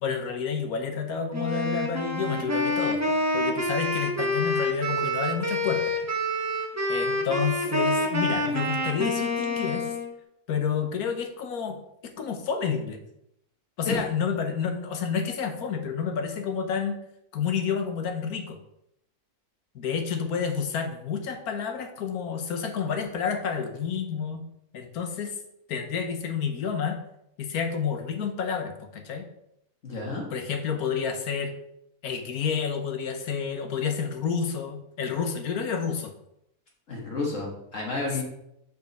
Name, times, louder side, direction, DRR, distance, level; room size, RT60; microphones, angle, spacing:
voice 1, 0.0-5.8 6.9-9.9 10.5-11.8 12.2-13.0 13.8-17.0 17.3-18.6 19.7-24.4 24.7-25.3 25.7-27.0 27.4-29.2 30.3-31.5 32.0-36.1, left 6 dB, 75° left, 6 dB, 1.4 m, -29 dB
Wind instrument woodwind instrument, 1.3-10.1, left 1 dB, 20° right, 0.4 m, -27 dB
voice 2, 29.8-30.2 36.9-38.2, left 3 dB, 55° left, -2 dB, 1.7 m, -31 dB
5.5 x 4.7 x 5.2 m, 0.80 s
omnidirectional pair, 1.6 m